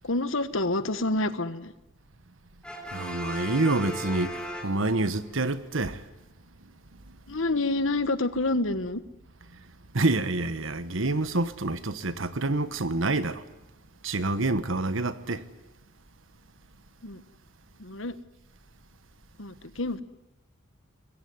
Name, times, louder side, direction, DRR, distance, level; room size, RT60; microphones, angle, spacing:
voice 1, 0.0-1.7 7.3-9.0 17.0-17.2 17.8-18.2 19.4-20.0, left 2 dB, 75° left, 1.5 m, -28 dB
Brass instrument, 2.6-5.3, equal, 5° left, 3.4 m, -37 dB
voice 2, 2.9-4.3 4.6-6.0 9.9-13.4 14.0-15.4, right 2 dB, 75° right, 1.4 m, -27 dB
26.0 x 21.5 x 9.5 m
head